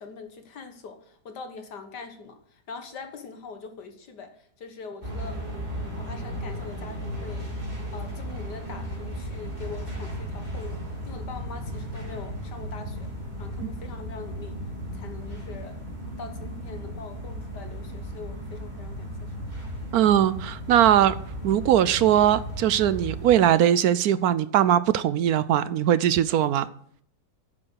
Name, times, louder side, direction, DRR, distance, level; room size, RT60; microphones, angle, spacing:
voice 1, 0.0-5.5 5.7-7.5 7.9-13.1 13.4-14.6 14.9-15.8 16.2-19.6, left 4 dB, 80° left, 2.0 m, -42 dB
sound 1, 5.0-23.4, equal, 25° right, 3.4 m, -35 dB
voice 2, 19.9-21.1 21.4-26.7, right 11 dB, 70° right, 1.0 m, -20 dB
9.7 x 7.7 x 6.3 m
omnidirectional pair, 1.8 m